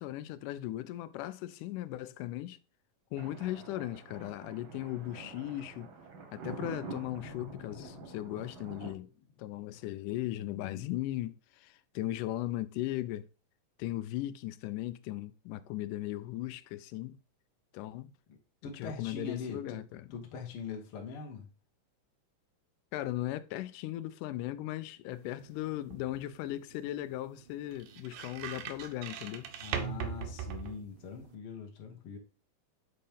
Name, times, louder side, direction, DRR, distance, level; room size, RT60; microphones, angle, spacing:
voice 1, 0.0-2.6 3.1-5.9 6.3-9.1 9.4-13.3 13.8-17.2 17.7-18.1 18.8-20.1 22.9-29.5, left 15 dB, 90° left, 2.1 m, -37 dB
Thunder, 3.2-8.9, right 5 dB, 55° right, 1.5 m, -47 dB
sound 1, 6.7-9.9, left 7 dB, 70° left, 2.4 m, -52 dB
voice 2, 10.3-10.9 18.3-18.4 18.6-21.5 29.6-32.2, left 5 dB, 55° left, 1.7 m, -43 dB
sound 2, 25.1-31.3, right 8 dB, 85° right, 2.4 m, -42 dB
7.5 x 4.3 x 3.4 m
omnidirectional pair, 3.6 m